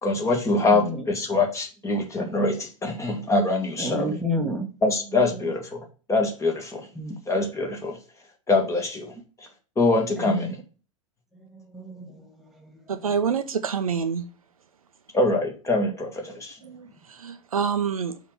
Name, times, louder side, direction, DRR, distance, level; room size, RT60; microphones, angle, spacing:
voice 1, 0.0-4.2 4.8-6.9 7.3-8.0 8.5-9.1 9.4-9.5 9.8-10.6 15.1-16.6, left 2 dB, 15° left, 1.8 m, -24 dB
voice 2, 0.6-1.0 3.8-4.7 7.0-7.2 10.2-10.5 11.5-12.2 12.6-12.7, left 1 dB, ahead, 1.2 m, -30 dB
voice 3, 12.9-14.2 16.6-18.2, right 6 dB, 75° right, 0.7 m, -27 dB
5.5 x 4.8 x 6.1 m
figure-of-eight pair, 90°, 18 cm